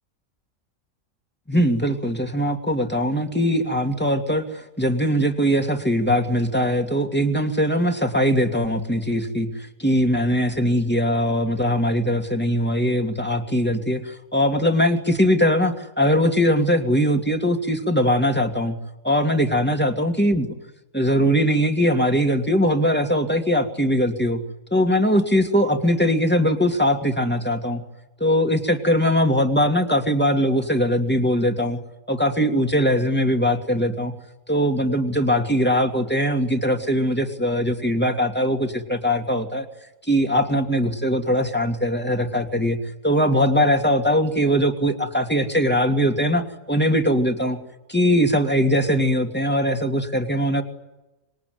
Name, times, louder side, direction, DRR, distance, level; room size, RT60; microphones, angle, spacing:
voice 1, 1.5-18.8 19.0-20.5 20.9-24.4 24.7-27.8 28.2-31.8 32.1-34.1 34.5-39.7 40.1-42.8 43.0-47.6 47.9-50.6, equal, 5° left, 4 dB, 2.5 m, -21 dB
26.5 x 22.0 x 9.6 m, 0.99 s
omnidirectional pair, 1.5 m